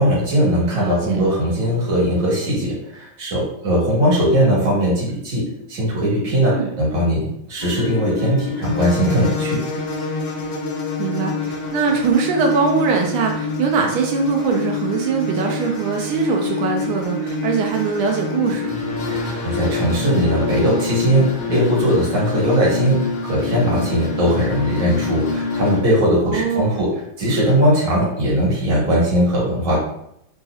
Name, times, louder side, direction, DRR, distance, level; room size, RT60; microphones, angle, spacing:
voice 1, 0.0-5.4 5.7-9.6 19.1-21.2 21.5-26.9 27.2-29.8, equal, 60° right, -6 dB, 1.9 m, -19 dB
voice 2, 0.7-1.2 6.4-6.7 11.0-18.8 26.2-26.9, right 5 dB, 85° right, 1 dB, 1.4 m, -22 dB
sound 1, 7.6-25.8, left 4 dB, 70° left, 1.3 m, -26 dB
4.0 x 2.7 x 2.3 m, 0.75 s
omnidirectional pair, 2.3 m